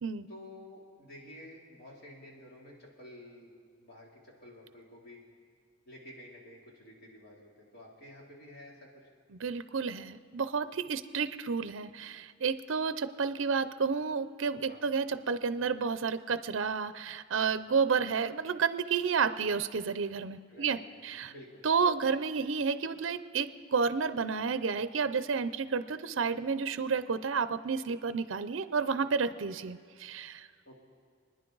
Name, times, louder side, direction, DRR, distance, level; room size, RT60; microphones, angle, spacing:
voice 1, 0.3-3.5 3.8-5.2 5.8-8.9 14.7-14.8 20.5-21.0 21.3-21.6 30.6-30.7, left 1 dB, 55° left, -3 dB, 3.1 m, -51 dB
voice 2, 9.4-21.3 21.6-30.5, right 5 dB, 75° right, 12 dB, 0.5 m, -31 dB
29.0 x 10.0 x 3.9 m, 2.1 s
head